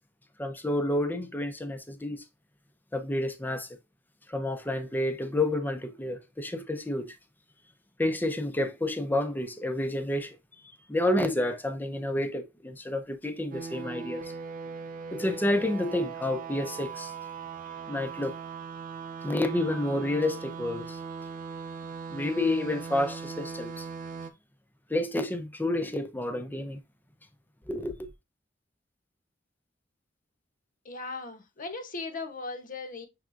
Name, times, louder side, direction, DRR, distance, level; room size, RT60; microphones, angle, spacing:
voice 1, 0.4-2.2 2.9-3.7 4.3-7.1 8.0-10.3 10.9-14.3 15.1-17.1 17.9-18.3 19.2-21.0 22.1-23.9 24.9-26.8 27.7-28.1, left 1 dB, 10° left, 0.5 m, -29 dB
sound 1, 13.5-24.3, right 5 dB, 45° right, 0.5 m, -39 dB
voice 2, 30.8-33.1, left 3 dB, 45° left, 0.8 m, -38 dB
6.2 x 3.5 x 2.5 m
head